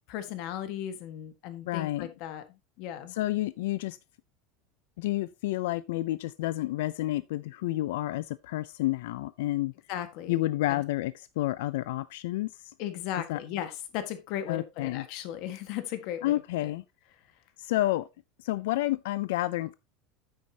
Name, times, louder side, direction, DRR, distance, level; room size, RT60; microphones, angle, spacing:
voice 1, 0.1-2.4 2.8-3.1 9.9-10.4 10.7-10.8 12.8-16.3 16.6-16.7, left 11 dB, 50° left, 1.6 m, -36 dB
voice 2, 1.7-2.1 3.1-4.0 5.0-9.7 10.3-12.7 13.2-13.4 14.5-15.1 16.2-16.8 17.6-18.1 18.4-19.7, left 16 dB, 90° left, 0.4 m, -30 dB
9.5 x 8.8 x 2.9 m
cardioid pair, 175°, 0 cm